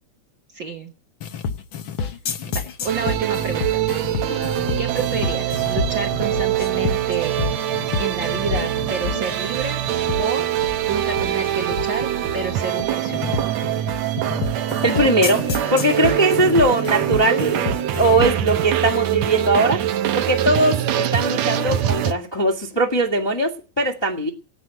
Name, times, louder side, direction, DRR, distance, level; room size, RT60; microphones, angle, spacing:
voice 1, 0.5-0.9 2.5-3.9 4.1-4.2 4.8-7.4 8.0-9.8 10.2-10.5 10.9-13.5, right 4 dB, 50° right, 1.7 m, -29 dB
sound 1, 1.2-18.5, left 5 dB, 55° left, 1.6 m, -29 dB
sound 2, 2.9-22.1, right 11 dB, 70° right, 2.0 m, -23 dB
voice 2, 14.8-15.4 15.7-17.7 18.0-19.8 20.1-24.3, right 1 dB, 10° left, 1.5 m, -20 dB
17.5 x 9.6 x 6.5 m
omnidirectional pair, 3.3 m